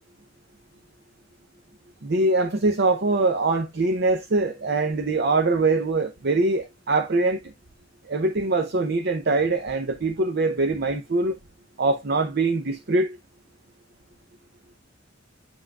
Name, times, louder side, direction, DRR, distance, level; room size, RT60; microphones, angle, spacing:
voice 1, 2.0-7.5 8.0-11.3 11.8-13.2, right 3 dB, 55° right, 0.7 m, -23 dB
8.9 x 5.6 x 2.3 m
head